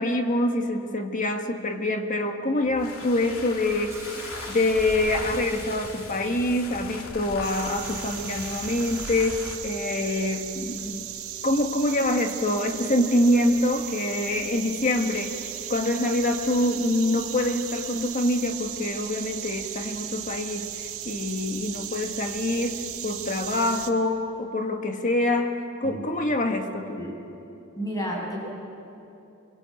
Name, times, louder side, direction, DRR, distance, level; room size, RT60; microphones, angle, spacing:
voice 1, 0.0-4.0 4.5-11.0 11.4-15.4 15.7-27.0, left 1 dB, 40° left, 5 dB, 1.6 m, -25 dB
sound 1, 2.6-9.7, left 3 dB, 85° left, 2.7 m, -39 dB
Toilet flush, 2.7-7.0, right 3 dB, 15° right, 4.9 m, -44 dB
sound 2, 7.4-23.9, right 11 dB, 80° right, 1.8 m, -36 dB
voice 2, 27.8-28.5, equal, 15° left, -2 dB, 6.8 m, -31 dB
25.0 x 23.5 x 8.8 m, 2.9 s
head